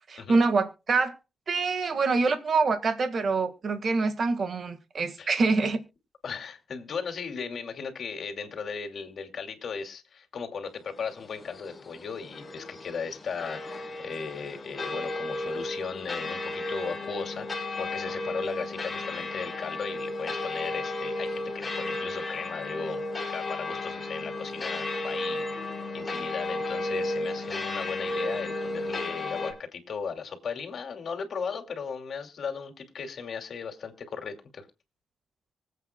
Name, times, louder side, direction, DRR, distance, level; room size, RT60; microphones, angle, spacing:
voice 1, 0.1-1.1 1.5-5.8, right 4 dB, 45° right, 1.6 m, -25 dB
voice 2, 6.2-17.5 17.8-23.0 23.3-34.7, left 5 dB, 50° left, 2.6 m, -37 dB
sound 1, 11.0-29.5, left 2 dB, 20° left, 3.1 m, -34 dB
24.5 x 8.3 x 2.2 m
cardioid pair, 130°, 0 cm